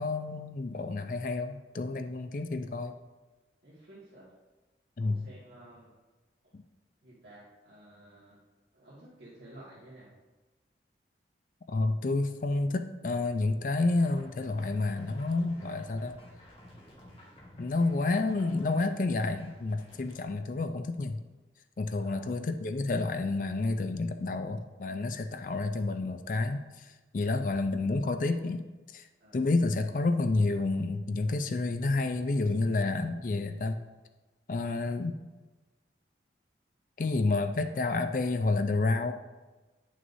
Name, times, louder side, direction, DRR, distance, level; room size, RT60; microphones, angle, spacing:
voice 1, 0.0-2.9 5.0-5.2 6.5-6.6 11.7-16.2 17.6-21.2 21.8-28.7 28.9-29.1 29.3-33.8 34.5-35.2 37.0-39.1, left 3 dB, 45° left, 8 dB, 0.4 m, -29 dB
voice 2, 3.6-4.3 5.0-5.9 7.0-8.4 8.7-10.1 22.0-22.3 29.2-29.5, right 1 dB, 75° right, -9 dB, 1.8 m, -52 dB
sound 1, 13.8-20.2, equal, 30° left, 1.5 m, -53 dB
9.3 x 6.2 x 2.7 m, 1.2 s
head